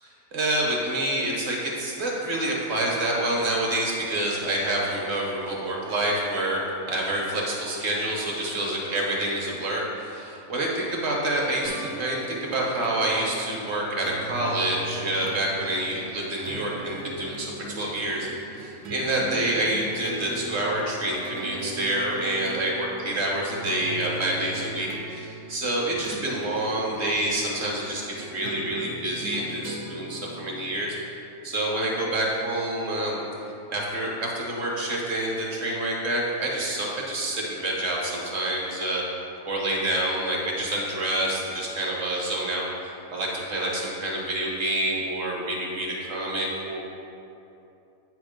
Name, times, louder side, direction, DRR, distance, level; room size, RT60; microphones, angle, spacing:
voice 1, 0.3-6.6 6.9-31.0 31.4-39.0 39.4-42.6 43.1-46.8, right 1 dB, 50° right, -2 dB, 1.4 m, -27 dB
sound 1, 11.7-30.9, right 2 dB, 85° right, 1.2 m, -39 dB
8.3 x 3.5 x 5.1 m, 2.7 s
omnidirectional pair, 1.5 m